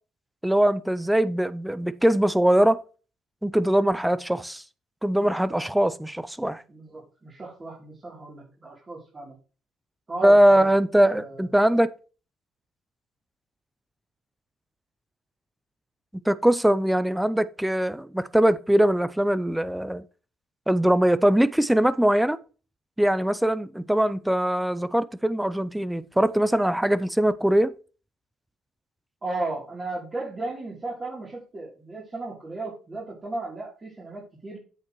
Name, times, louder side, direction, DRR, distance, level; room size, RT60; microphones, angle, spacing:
voice 1, 0.4-2.8 3.4-4.6 5.0-6.6 10.2-11.9 16.3-20.0 20.7-22.4 23.0-27.7, right 1 dB, 5° right, 0.5 m, -21 dB
voice 2, 6.7-9.4 10.1-10.7 11.1-11.5 29.2-34.6, right 2 dB, 30° right, 3.2 m, -35 dB
8.5 x 7.2 x 3.1 m
supercardioid pair, 60°, 0 cm